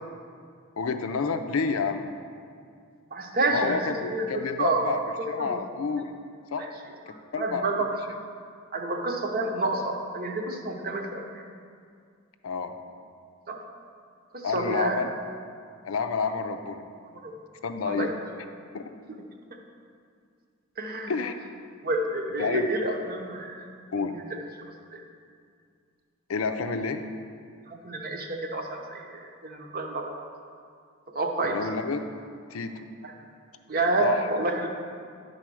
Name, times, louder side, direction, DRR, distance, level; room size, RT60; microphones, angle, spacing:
voice 1, 0.8-2.1 3.5-5.0 5.3-6.2 6.5-6.7 7.3-7.7 12.4-12.7 14.4-15.1 15.8-16.8 17.6-18.1 18.7-18.8 21.1-21.3 22.4-22.7 23.9-24.1 26.3-27.0 31.4-32.0 32.5-32.8 34.0-34.3, left 5 dB, 75° left, 7 dB, 0.5 m, -29 dB
voice 2, 3.1-3.8 4.1-4.9 5.2-5.6 6.6-6.7 7.1-8.2 8.7-11.4 13.5-13.6 14.3-15.0 17.1-17.3 17.8-18.1 19.1-19.2 20.8-21.1 21.8-23.7 23.9-24.4 24.9-25.0 27.7-30.1 31.1-31.7 33.0-33.1 33.7-34.7, right 2 dB, 45° right, 3 dB, 0.9 m, -29 dB
10.5 x 4.0 x 6.1 m, 2.2 s
head